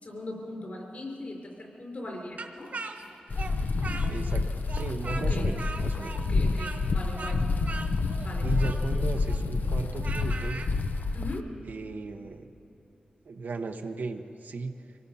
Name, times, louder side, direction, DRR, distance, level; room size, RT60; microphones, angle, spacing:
voice 1, 0.0-2.7 5.3-5.5 6.2-7.4 8.2-8.5 11.1-11.5, left 1 dB, 55° left, 0 dB, 4.8 m, -39 dB
Speech, 2.4-4.4 4.7-10.7, right 3 dB, 60° right, 1.5 m, -40 dB
sound 1, 3.3-11.4, left 3 dB, 75° left, 0.7 m, -28 dB
voice 2, 4.1-6.3 8.4-10.6 11.7-12.5 13.2-14.7, right 4 dB, 85° right, 4 dB, 1.0 m, -36 dB
25.0 x 18.5 x 5.6 m, 2.9 s
wide cardioid pair, 90°, 3 cm